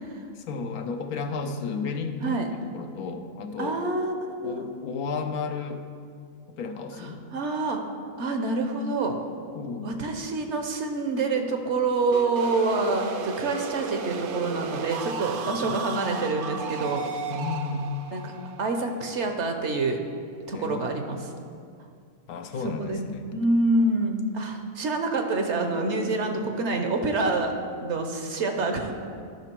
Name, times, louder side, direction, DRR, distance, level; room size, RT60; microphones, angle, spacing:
voice 1, 0.3-3.8 4.4-5.8 6.6-7.2 9.5-9.9 17.3-17.9 20.5-21.0 22.3-23.2, left 4 dB, 85° left, 6 dB, 1.2 m, -33 dB
voice 2, 3.6-4.6 7.3-7.8 8.2-9.2 9.8-17.0 18.1-18.3 18.6-20.0 20.5-21.4 22.8-27.5 27.8-28.9, right 3 dB, 60° right, 4 dB, 1.0 m, -27 dB
sound 1, 12.1-19.8, right 5 dB, 85° right, 0.4 m, -35 dB
12.0 x 5.8 x 4.5 m, 2.3 s
omnidirectional pair, 1.5 m